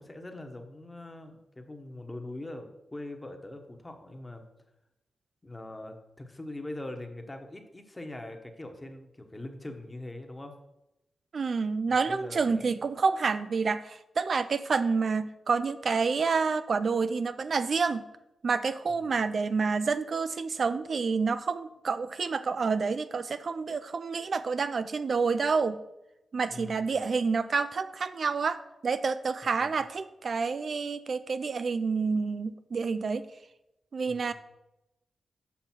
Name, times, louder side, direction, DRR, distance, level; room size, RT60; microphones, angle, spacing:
voice 1, 0.0-4.5 5.4-10.5 11.9-12.8 18.9-19.2 26.5-27.1 29.4-29.8 34.1-34.3, left 1 dB, 20° left, 5 dB, 1.1 m, -42 dB
voice 2, 11.3-18.0 18.4-25.8 26.3-33.3 33.9-34.3, right 4 dB, 60° right, 12 dB, 0.3 m, -28 dB
7.1 x 5.4 x 4.4 m, 0.91 s
cardioid pair, 60°, 0 cm